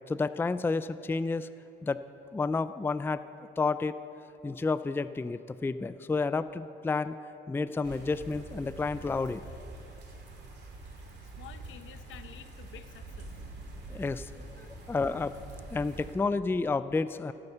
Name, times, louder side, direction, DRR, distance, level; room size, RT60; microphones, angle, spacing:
voice 1, 0.1-1.5 1.8-2.0 2.3-3.2 3.6-3.9 4.4-7.2 7.5-9.4 13.9-14.3 14.6-15.3 15.7-17.3, left 4 dB, 10° left, 14 dB, 0.4 m, -30 dB
sound 1, 7.8-16.2, right 2 dB, 60° right, 2.8 m, -45 dB
voice 2, 11.2-13.4, left 9 dB, 75° left, 11 dB, 0.8 m, -50 dB
15.0 x 9.8 x 6.7 m, 2.8 s
cardioid pair, 90°, 20 cm